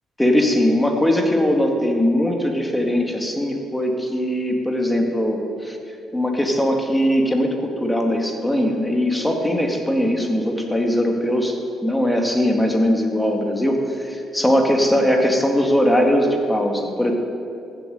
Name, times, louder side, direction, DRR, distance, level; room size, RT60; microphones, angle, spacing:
voice 1, 0.2-5.8 6.1-11.5 11.8-17.1, equal, 5° left, 2 dB, 2.1 m, -20 dB
15.0 x 7.8 x 7.8 m, 2.6 s
cardioid pair, 90°, 0 cm